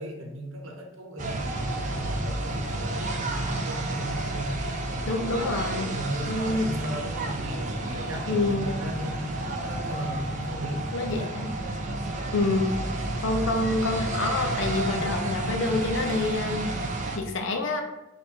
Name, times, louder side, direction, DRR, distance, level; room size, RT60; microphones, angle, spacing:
voice 1, 0.0-11.0, equal, 80° right, 1 dB, 0.9 m, -37 dB
sound 1, 1.2-17.2, right 2 dB, 40° right, 0.5 m, -31 dB
voice 2, 5.1-5.9 6.3-6.7 8.3-8.7 10.9-11.5 12.3-12.7 13.2-16.7 17.1-17.8, left 2 dB, 70° left, 4 dB, 0.6 m, -27 dB
4.2 x 2.5 x 4.4 m, 0.97 s
head